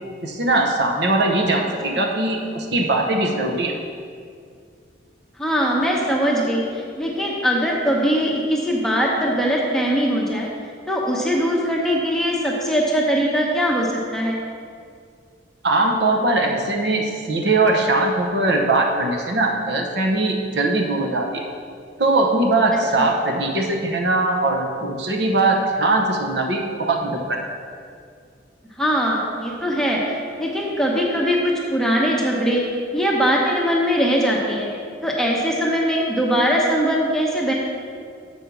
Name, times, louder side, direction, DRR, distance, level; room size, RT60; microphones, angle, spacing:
voice 1, 0.2-3.7 15.6-21.4 22.0-27.4, right 2 dB, 60° right, 1 dB, 0.8 m, -20 dB
voice 2, 5.4-10.5 10.9-14.4 23.0-23.1 28.8-32.6 32.9-34.7 35.0-37.5, equal, 5° left, -3 dB, 0.9 m, -21 dB
7.1 x 5.3 x 6.0 m, 2.2 s
head